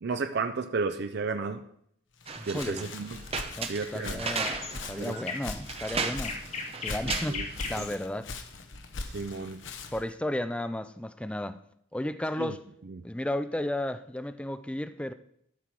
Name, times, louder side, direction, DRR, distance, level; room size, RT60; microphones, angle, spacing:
voice 1, 0.0-1.6 2.5-3.2 3.7-4.3 4.9-5.2 6.9-7.0 7.3-7.5 7.8-7.9 9.1-9.6 12.4-12.5, right 4 dB, 55° right, 8 dB, 0.5 m, -32 dB
Walk footsteps, 2.2-10.1, left 3 dB, 70° left, 0.9 m, -41 dB
sound 1, 2.3-7.8, right 5 dB, 30° right, 0.8 m, -36 dB
voice 2, 2.4-2.9 3.6-6.4 6.8-7.4 7.7-8.3 9.9-11.6 11.9-12.6 13.0-15.1, left 1 dB, 5° left, 11 dB, 0.4 m, -33 dB
sound 2, 3.8-9.9, left 4 dB, 35° left, 1.3 m, -39 dB
12.0 x 6.0 x 4.7 m, 0.69 s
head